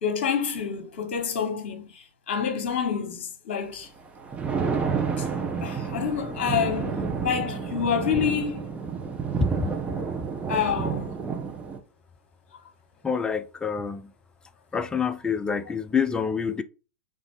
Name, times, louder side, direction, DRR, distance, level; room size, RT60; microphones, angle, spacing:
voice 1, 0.0-3.9 5.2-5.3 5.6-7.0 7.2-8.6 10.5-11.2, left 7 dB, 55° left, 1.3 m, -28 dB
Thunder, 4.0-11.8, right 6 dB, 20° right, 0.8 m, -30 dB
voice 2, 13.0-14.1 14.7-16.6, left 6 dB, 10° left, 0.4 m, -27 dB
4.0 x 3.5 x 3.4 m
figure-of-eight pair, 95°, 7 cm